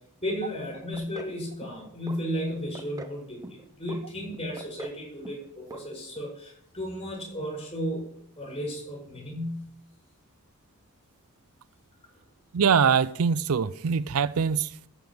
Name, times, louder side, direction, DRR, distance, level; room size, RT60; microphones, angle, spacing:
voice 1, 0.2-9.7, equal, 30° left, 6.1 m, -34 dB
sound 1, 0.9-1.4 1.6-2.2 2.5-3.2 3.4-4.0 4.3-5.0 5.2-5.5 5.7-5.8 6.2-6.3, right 2 dB, 15° right, 0.7 m, -42 dB
voice 2, 12.5-14.7, right 6 dB, 70° right, 0.5 m, -23 dB
14.5 x 5.3 x 7.8 m
head